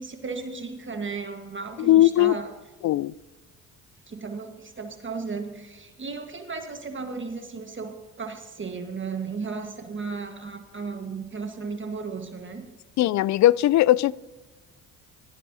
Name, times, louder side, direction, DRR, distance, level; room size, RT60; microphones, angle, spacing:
voice 1, 0.0-2.5 4.1-12.7, right 4 dB, 30° right, 1.5 m, -35 dB
voice 2, 1.8-2.4 2.8-3.1 13.0-14.1, left 14 dB, 50° left, 0.4 m, -19 dB
17.0 x 14.0 x 2.8 m
hypercardioid pair, 60°, 37 cm